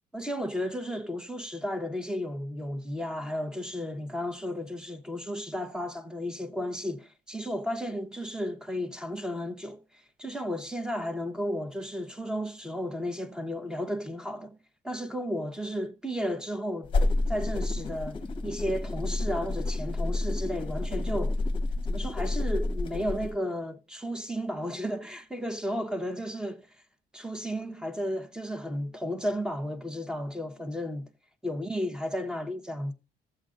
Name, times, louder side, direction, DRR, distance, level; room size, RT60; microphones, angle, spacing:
voice 1, 0.1-14.6 14.8-16.9 17.3-21.4 21.9-26.7 27.1-31.1 31.4-32.9, equal, 5° right, 0.9 m, -33 dB
sound 1, 16.8-23.3, left 2 dB, 30° left, 0.9 m, -29 dB
14.0 x 7.6 x 2.5 m
cardioid pair, 110°, 17 cm